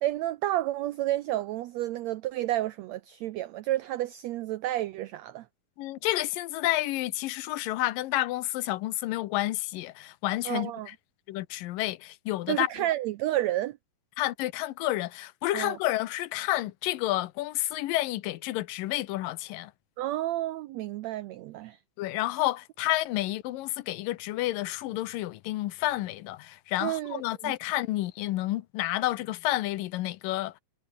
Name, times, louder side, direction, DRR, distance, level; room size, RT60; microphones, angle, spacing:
voice 1, 0.0-5.4 10.4-10.9 12.5-13.8 15.5-15.8 20.0-21.8 26.8-27.5, right 14 dB, 85° right, 1.5 m, -30 dB
voice 2, 5.8-11.0 11.3-12.9 14.2-19.7 22.0-30.6, left 16 dB, 85° left, 2.6 m, -30 dB
omnidirectional pair, 3.9 m